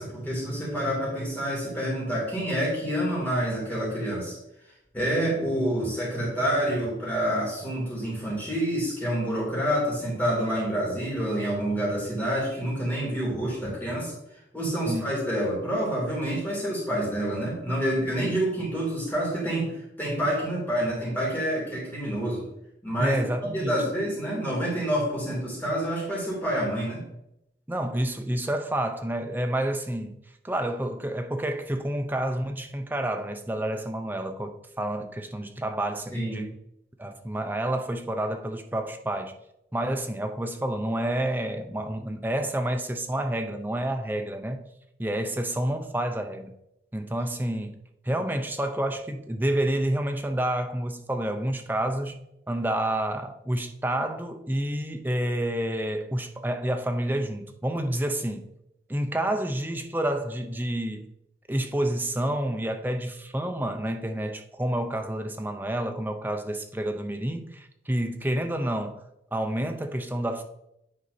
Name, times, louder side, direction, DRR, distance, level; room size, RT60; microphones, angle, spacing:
voice 1, 0.0-4.3 4.9-14.2 14.5-22.5 22.8-23.2 23.5-27.0 36.1-36.5, equal, 10° left, 3.0 m, -28 dB
voice 2, 23.0-23.8 27.7-30.2 30.4-36.5 37.0-39.4 39.7-44.7 45.0-46.6 46.9-47.8 48.0-52.2 52.5-58.5 58.9-61.1 61.5-69.0 69.3-70.4, right 1 dB, 10° right, 0.6 m, -29 dB
9.5 x 4.2 x 4.2 m
head